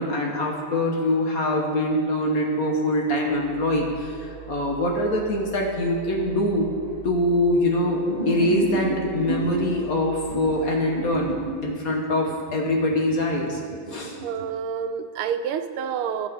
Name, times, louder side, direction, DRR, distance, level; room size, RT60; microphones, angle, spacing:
voice 1, 0.0-6.8 7.0-11.3 11.6-13.6 13.9-14.2, left 1 dB, 50° left, 0 dB, 1.3 m, -24 dB
sound 1, 3.3-11.4, right 5 dB, 55° right, 2.1 m, -42 dB
sound 2, 8.1-9.7 10.2-14.5, right 3 dB, 35° right, 0.7 m, -31 dB
voice 2, 14.2-16.3, right 7 dB, 85° right, 9 dB, 1.5 m, -28 dB
15.0 x 6.9 x 3.5 m, 2.1 s
omnidirectional pair, 2.3 m